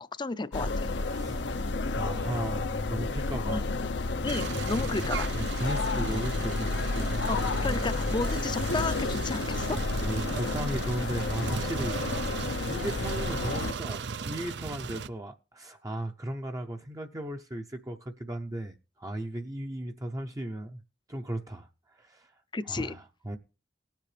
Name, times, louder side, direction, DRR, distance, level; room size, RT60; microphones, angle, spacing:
voice 1, 0.0-0.9 3.5-3.6 4.2-5.3 7.3-9.8 22.5-23.0, left 3 dB, 25° left, 0.5 m, -33 dB
sound 1, 0.5-13.7, left 3 dB, 80° left, 0.7 m, -31 dB
voice 2, 1.1-1.4 1.9-3.7 5.3-7.3 10.0-12.0 12.3-20.8 21.1-22.3 22.7-23.4, right 1 dB, 20° right, 0.6 m, -36 dB
sound 2, 4.3-15.1, right 5 dB, 70° right, 0.5 m, -37 dB
18.5 x 7.5 x 3.3 m
head